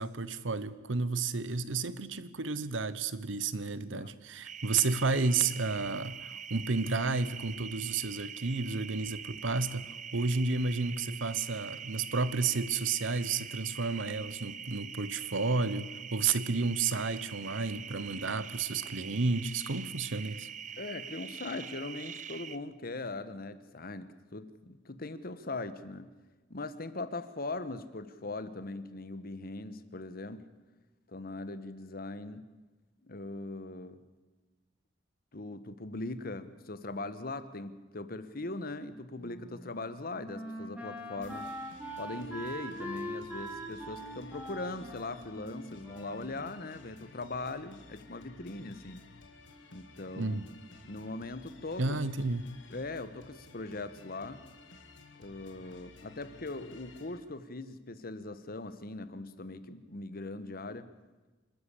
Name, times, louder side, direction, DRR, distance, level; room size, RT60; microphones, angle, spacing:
voice 1, 0.0-20.5 50.1-50.5 51.8-52.5, right 4 dB, 90° right, 1.1 m, -31 dB
sound 1, 4.4-22.6, right 8 dB, 40° right, 0.8 m, -44 dB
voice 2, 20.8-26.1 26.5-30.4 31.1-32.4 33.0-34.0 35.3-41.5 42.0-49.0 49.7-50.4 50.8-52.0 52.7-54.4 55.2-60.9, left 2 dB, 50° left, 1.3 m, -40 dB
Wind instrument woodwind instrument, 39.2-47.0, equal, 10° right, 2.9 m, -43 dB
sound 2, 41.2-57.2, left 3 dB, 75° left, 2.3 m, -54 dB
27.0 x 13.0 x 8.5 m
head